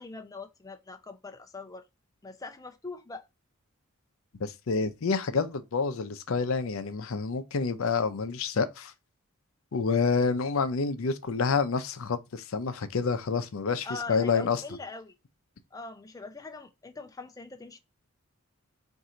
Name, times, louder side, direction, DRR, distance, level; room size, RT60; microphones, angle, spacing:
voice 1, 0.0-1.8 2.2-3.3 13.8-15.1 15.7-17.8, left 3 dB, 15° left, 0.5 m, -42 dB
voice 2, 4.4-8.9 9.7-14.6, left 4 dB, 70° left, 0.6 m, -28 dB
4.3 x 2.6 x 3.8 m
head